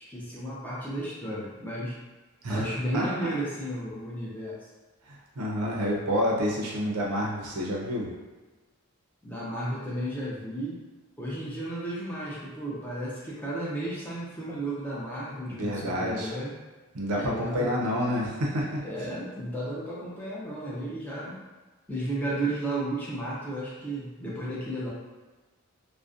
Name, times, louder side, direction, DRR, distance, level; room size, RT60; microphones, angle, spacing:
voice 1, 0.0-2.0 2.5-4.7 9.2-10.8 11.2-16.5 17.1-17.7 18.8-21.4 21.9-24.9, right 1 dB, 10° left, -7 dB, 0.4 m, -33 dB
voice 2, 2.4-3.0 5.1-8.1 15.5-16.3 16.9-18.8, equal, 85° right, -2 dB, 0.6 m, -29 dB
2.5 x 2.1 x 2.4 m, 1.3 s
head